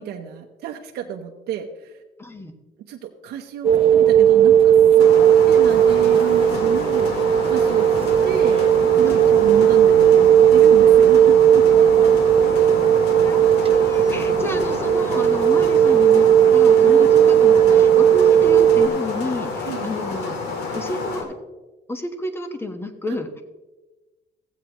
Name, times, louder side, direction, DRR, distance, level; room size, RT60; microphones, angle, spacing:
voice 1, 0.0-2.0 2.9-7.1 7.5-7.9 8.2-8.6 8.9-12.1 16.8-17.1 19.7-19.9 23.1-23.2, right 10 dB, 70° right, 3 dB, 0.8 m, -31 dB
voice 2, 2.2-2.5 13.2-13.4 13.7-20.4 20.7-21.3 21.9-23.4, left 1 dB, 15° left, 7 dB, 1.2 m, -30 dB
sound 1, 3.6-18.9, right 9 dB, 35° right, 0.5 m, -15 dB
sound 2, 5.0-21.2, left 4 dB, 85° left, 1.8 m, -29 dB
15.5 x 8.2 x 3.0 m, 1.2 s
cardioid pair, 110°, 17 cm